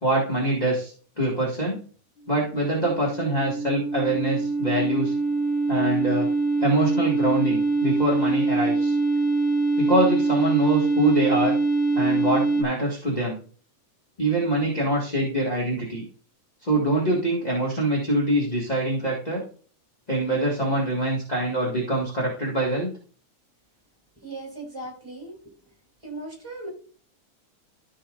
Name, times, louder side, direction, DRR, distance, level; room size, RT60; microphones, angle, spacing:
voice 1, 0.0-1.8 2.3-5.1 5.7-6.3 6.6-8.9 9.8-11.5 11.9-13.4 14.2-16.0 16.6-19.4 20.1-22.9, right 1 dB, 20° left, -4 dB, 1.3 m, -24 dB
sound 1, 2.4-12.6, right 3 dB, 70° left, 1.3 m, -24 dB
voice 2, 24.2-25.4 26.0-26.7, right 2 dB, 10° right, -1 dB, 4.1 m, -37 dB
14.5 x 5.6 x 2.6 m, 0.41 s
omnidirectional pair, 3.5 m